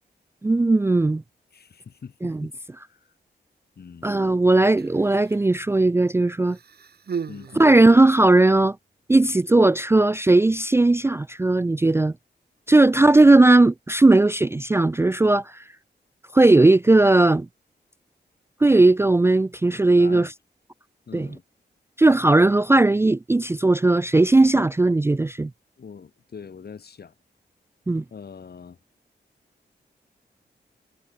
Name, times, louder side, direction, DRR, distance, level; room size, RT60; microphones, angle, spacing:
voice 1, 0.4-1.2 2.2-2.4 4.0-6.6 7.6-8.8 9.1-12.1 12.7-15.6 16.3-17.5 18.6-20.3 21.1-21.3 22.0-25.5 27.9-28.0, right 2 dB, 15° right, 0.4 m, -17 dB
voice 2, 1.5-2.5 2.8-3.1 3.7-4.2 7.3-7.7 20.0-20.3 21.1-21.4 25.8-27.1 28.1-28.8, left 6 dB, 65° left, 6.8 m, -42 dB
Human voice, 4.6-5.5 6.4-8.4 9.3-9.4, right 6 dB, 65° right, 3.0 m, -37 dB
cardioid pair, 75°, 18 cm